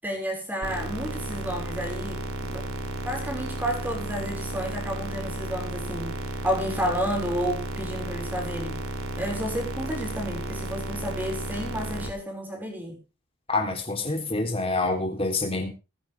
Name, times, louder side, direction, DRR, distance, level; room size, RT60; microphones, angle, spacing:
voice 1, 0.0-2.6 3.0-6.2 6.4-8.8 9.2-13.0, equal, 10° right, 3 dB, 5.9 m, -31 dB
sound 1, 0.6-12.1, right 1 dB, 85° right, 3.2 m, -33 dB
voice 2, 13.5-15.7, left 2 dB, 25° left, 3 dB, 3.6 m, -27 dB
22.0 x 9.9 x 3.6 m, 0.31 s
head